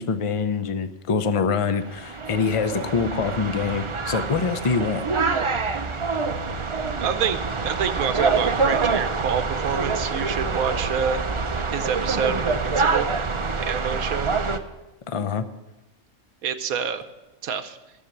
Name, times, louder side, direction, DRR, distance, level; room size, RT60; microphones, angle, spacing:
voice 1, 0.0-5.0 15.1-15.5, left 5 dB, 40° left, 11 dB, 0.4 m, -25 dB
sound 1, 1.8-14.6, right 4 dB, 40° right, 0.4 m, -26 dB
voice 2, 7.0-11.2 11.7-13.1 13.6-14.3 16.4-17.0 17.4-17.8, right 7 dB, 75° right, 10 dB, 1.2 m, -27 dB
14.0 x 7.3 x 7.2 m, 1.0 s
omnidirectional pair, 1.5 m